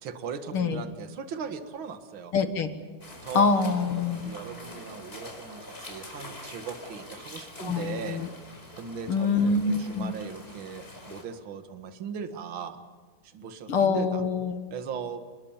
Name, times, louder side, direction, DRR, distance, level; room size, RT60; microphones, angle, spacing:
voice 1, 0.0-2.3 3.2-8.2 8.8-12.8 13.2-14.2 14.7-15.2, right 6 dB, 45° right, 7 dB, 2.2 m, -39 dB
voice 2, 2.3-2.7 3.3-4.3 7.6-8.3 9.1-10.1 13.7-14.6, left 4 dB, 50° left, 8 dB, 2.1 m, -25 dB
sound 1, 3.0-11.2, left 1 dB, 20° left, 4.8 m, -44 dB
28.5 x 21.0 x 7.3 m, 1.4 s
omnidirectional pair, 3.5 m